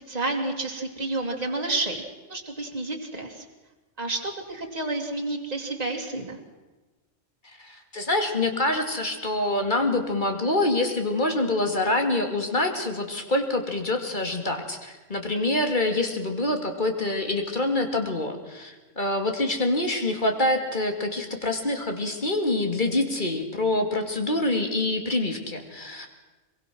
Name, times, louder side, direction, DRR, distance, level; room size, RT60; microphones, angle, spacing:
voice 1, 0.1-2.0 2.3-3.4 4.0-6.4, right 2 dB, 30° right, 1 dB, 2.7 m, -30 dB
voice 2, 7.6-26.1, left 2 dB, 40° left, 4 dB, 2.7 m, -26 dB
23.5 x 22.5 x 6.2 m, 1.2 s
omnidirectional pair, 1.3 m